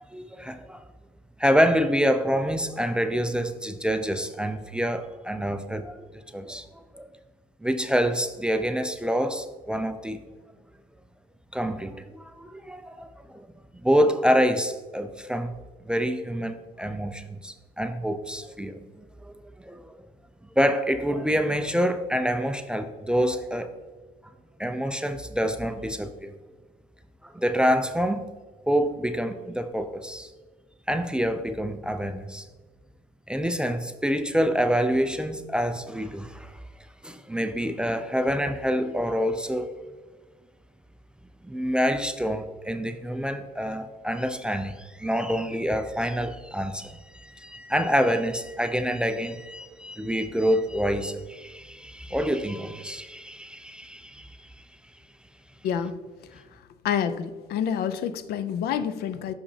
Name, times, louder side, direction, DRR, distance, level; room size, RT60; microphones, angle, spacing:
voice 1, 0.1-0.8 1.4-6.0 6.3-6.7 6.9-7.1 7.6-10.2 11.5-13.5 13.8-15.5 15.8-19.3 19.6-19.9 20.6-23.7 24.6-26.3 27.2-28.3 28.7-30.3 30.9-32.5 33.3-36.6 37.0-39.7 41.4-54.5, equal, 5° right, 8 dB, 0.4 m, -27 dB
voice 2, 55.6-56.0 56.8-59.3, left 8 dB, 70° left, 13 dB, 0.5 m, -28 dB
6.4 x 5.7 x 2.8 m, 1.4 s
cardioid pair, 110°, 17 cm